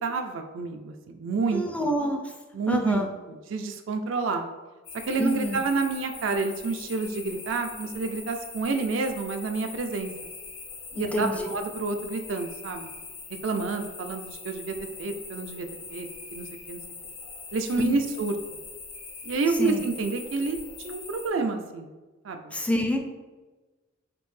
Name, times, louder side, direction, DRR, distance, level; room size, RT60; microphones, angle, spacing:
voice 1, 0.0-1.6 2.5-4.5 5.1-10.1 10.9-12.9 13.4-16.8 17.5-18.4 19.2-20.6 20.8-21.9 22.2-22.4, right 3 dB, 70° right, 5 dB, 0.4 m, -29 dB
voice 2, 1.5-2.2 2.7-3.1 5.2-5.6 11.0-11.5 17.8-18.0 19.6-19.8 22.5-23.0, equal, 5° left, 2 dB, 0.4 m, -27 dB
sound 1, 4.8-21.3, left 4 dB, 75° left, 1.1 m, -42 dB
5.1 x 2.7 x 3.2 m, 1.2 s
head